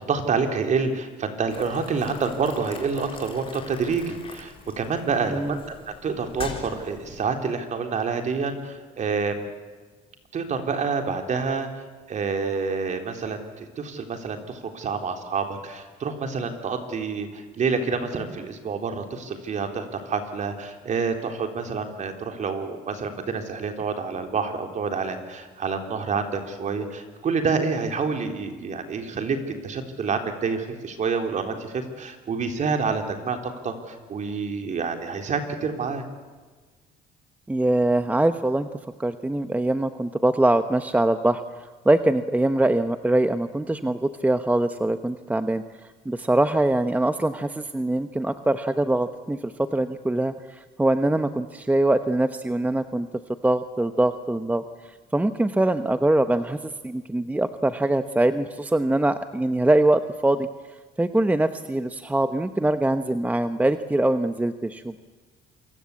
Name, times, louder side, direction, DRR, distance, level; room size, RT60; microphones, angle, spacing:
voice 1, 0.0-5.6 5.9-9.5 10.3-29.4 29.6-36.0, right 5 dB, 45° right, 5 dB, 3.9 m, -28 dB
Boiling, 1.5-7.3, left 5 dB, 35° left, 4.2 m, -42 dB
voice 2, 37.5-38.7 39.0-41.4 41.8-45.6 46.0-53.1 53.4-54.6 55.1-60.5 61.0-65.0, right 1 dB, 10° right, 10 dB, 1.0 m, -23 dB
27.5 x 23.5 x 8.5 m, 1.4 s
cardioid pair, 110°, 17 cm